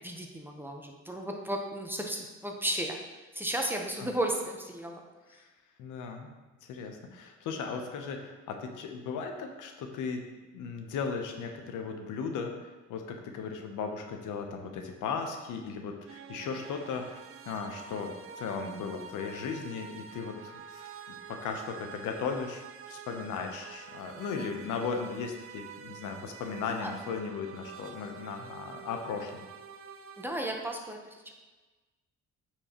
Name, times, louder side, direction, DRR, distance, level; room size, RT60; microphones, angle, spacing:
voice 1, 0.0-3.0 3.3-5.0 26.8-26.9 30.2-31.0, right 1 dB, 5° right, 1 dB, 0.9 m, -34 dB
voice 2, 5.8-6.3 6.7-10.2 10.5-12.5 12.9-17.2 17.5-20.4 20.7-29.5, left 5 dB, 90° left, 4 dB, 0.8 m, -36 dB
sound 1, 16.1-30.2, right 7 dB, 50° right, 0.5 m, -47 dB
8.7 x 4.5 x 3.0 m, 1.2 s
cardioid pair, 90°, 30 cm